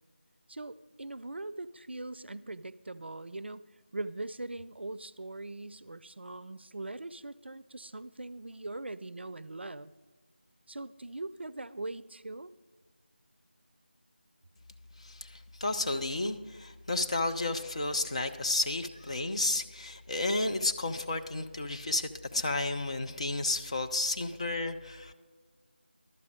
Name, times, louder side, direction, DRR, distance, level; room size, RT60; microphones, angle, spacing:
voice 1, 0.5-3.7 3.9-9.9 10.7-12.5, right 2 dB, 75° right, 17 dB, 0.4 m, -41 dB
voice 2, 15.0-25.1, left 2 dB, 35° left, 6 dB, 0.5 m, -32 dB
12.0 x 8.1 x 5.0 m, 1.4 s
figure-of-eight pair, 165°, 6 cm